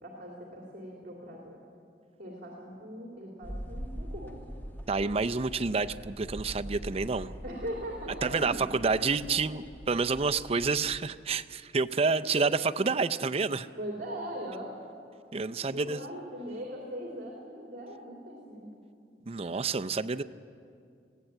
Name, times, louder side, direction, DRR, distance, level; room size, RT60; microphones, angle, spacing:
voice 1, 0.0-1.6 2.2-4.4 7.4-8.7 8.9-9.5 12.3-12.4 13.8-14.8 15.6-18.7, equal, 50° right, -1 dB, 2.9 m, -40 dB
sound 1, 3.4-11.0, equal, 10° left, 1.1 m, -43 dB
voice 2, 4.9-7.3 8.2-13.7 15.3-16.0 19.3-20.2, right 4 dB, 35° right, 9 dB, 0.5 m, -29 dB
21.0 x 16.0 x 8.9 m, 2.4 s
head